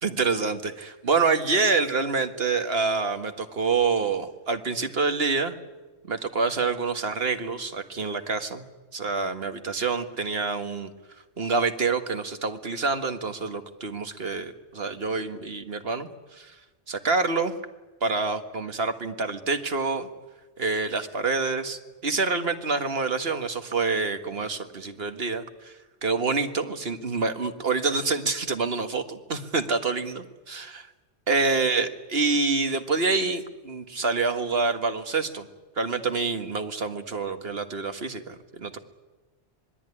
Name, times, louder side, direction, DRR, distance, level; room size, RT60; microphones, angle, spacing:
voice 1, 0.0-5.6 6.1-8.7 8.9-10.9 11.4-16.5 16.9-17.5 18.0-20.1 20.6-25.7 26.0-30.9 31.3-35.5 35.8-38.8, right 4 dB, 60° right, 8 dB, 1.8 m, -27 dB
25.5 x 20.5 x 9.9 m, 1.2 s
omnidirectional pair, 1.1 m